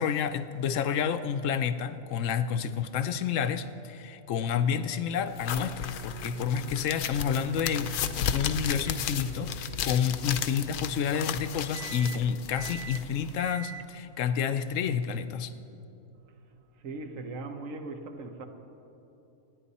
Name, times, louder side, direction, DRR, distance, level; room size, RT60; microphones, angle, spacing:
voice 1, 0.0-7.9 8.3-15.5, left 7 dB, 65° left, 10 dB, 0.9 m, -29 dB
sound 1, 5.3-15.6, right 6 dB, 90° right, 0.4 m, -45 dB
sound 2, 5.4-13.5, left 8 dB, 85° left, 1.2 m, -34 dB
voice 2, 16.7-18.5, right 3 dB, 60° right, 6 dB, 1.4 m, -39 dB
28.0 x 9.5 x 4.2 m, 2.9 s
omnidirectional pair, 1.6 m